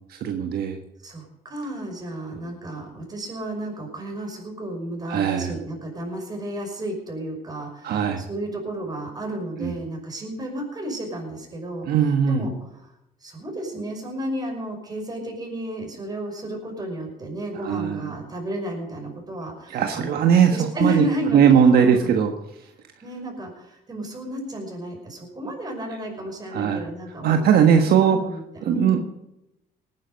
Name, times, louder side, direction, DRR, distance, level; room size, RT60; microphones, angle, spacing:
voice 1, 0.1-0.8 5.1-5.6 7.8-8.3 9.6-9.7 11.9-12.4 17.6-18.1 19.7-21.0 21.3-22.3 26.5-26.9 27.2-28.2 28.6-29.0, right 8 dB, 65° right, 4 dB, 1.4 m, -19 dB
voice 2, 1.0-11.9 12.3-12.9 13.2-20.2 20.5-22.2 23.0-29.0, right 1 dB, 25° right, 1 dB, 5.7 m, -32 dB
18.5 x 10.0 x 5.3 m, 0.86 s
cardioid pair, 110°, 17 cm